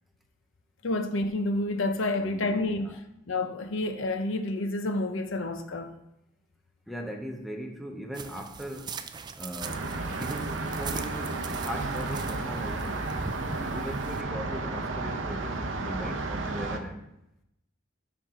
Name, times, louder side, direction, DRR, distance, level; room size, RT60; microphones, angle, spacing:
voice 1, 0.8-3.0 3.3-5.9, left 2 dB, 70° left, 0.7 m, -29 dB
voice 2, 2.1-3.0 6.9-9.0 9.4-13.0 13.6-17.0, equal, ahead, 0.8 m, -39 dB
sound 1, 8.1-14.2, right 5 dB, 20° right, 0.3 m, -41 dB
sound 2, 9.6-16.8, right 3 dB, 70° right, 0.8 m, -32 dB
11.5 x 4.6 x 3.8 m
head